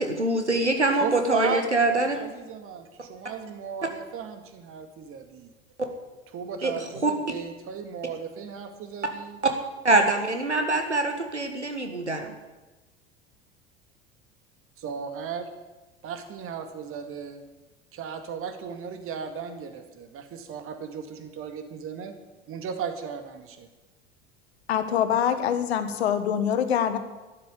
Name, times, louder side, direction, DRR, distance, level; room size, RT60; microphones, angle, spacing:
voice 1, 0.0-2.2 6.6-6.7 7.0-7.1 9.4-9.5 9.8-12.3, right 2 dB, 90° right, 5 dB, 1.6 m, -24 dB
voice 2, 0.9-5.5 6.3-9.4 14.8-15.5 16.0-17.4 17.9-22.1 22.5-23.7, right 7 dB, 40° right, 7 dB, 2.0 m, -36 dB
voice 3, 24.7-27.0, left 9 dB, 70° left, 9 dB, 1.4 m, -24 dB
12.0 x 9.8 x 8.3 m, 1.1 s
figure-of-eight pair, 70°, 34 cm